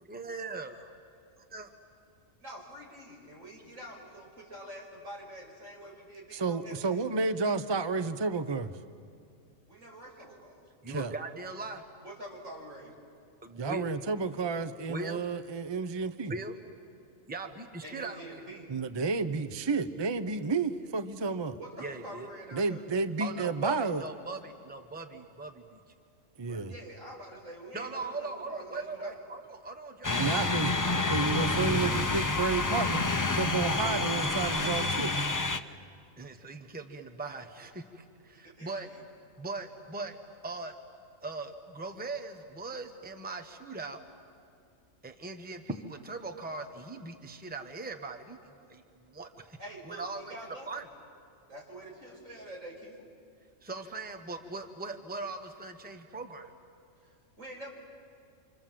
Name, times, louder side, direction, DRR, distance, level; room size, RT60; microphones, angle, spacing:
voice 1, 0.0-0.9 1.5-1.7 10.8-11.8 13.4-13.9 14.9-15.2 16.3-16.5 17.3-18.4 21.8-22.3 23.2-25.8 26.4-26.6 27.7-30.2 36.2-38.9 39.4-40.2 40.4-40.7 41.2-44.0 45.0-48.8 49.1-49.6 49.8-50.3 50.7-50.9 53.6-56.5, right 3 dB, 10° right, 6 dB, 1.1 m, -40 dB
voice 2, 2.4-7.0 9.7-10.6 12.0-12.9 17.8-18.7 21.6-22.8 26.7-29.2 38.4-39.0 49.6-50.8 51.5-53.1 57.0-57.7, right 1 dB, 80° right, -2 dB, 6.2 m, -46 dB
voice 3, 6.3-8.7 10.9-11.1 13.6-16.3 18.7-21.6 22.5-24.0 26.4-26.7 30.2-30.7 31.0-35.3, right 4 dB, 25° right, 11 dB, 0.6 m, -31 dB
sound 1, 30.0-35.6, left 3 dB, 20° left, 0.5 m, -28 dB
27.5 x 26.5 x 7.6 m, 2.4 s
omnidirectional pair, 1.3 m